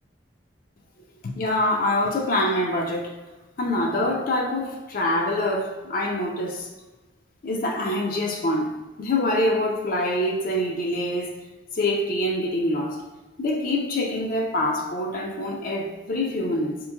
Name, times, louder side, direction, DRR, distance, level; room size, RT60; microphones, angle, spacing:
voice 1, 1.2-3.2 3.6-6.7 7.4-8.7 9.0-11.4 11.7-13.0 13.4-16.8, left 1 dB, 50° left, 0 dB, 0.4 m, -25 dB
4.2 x 3.0 x 2.2 m, 1.2 s
head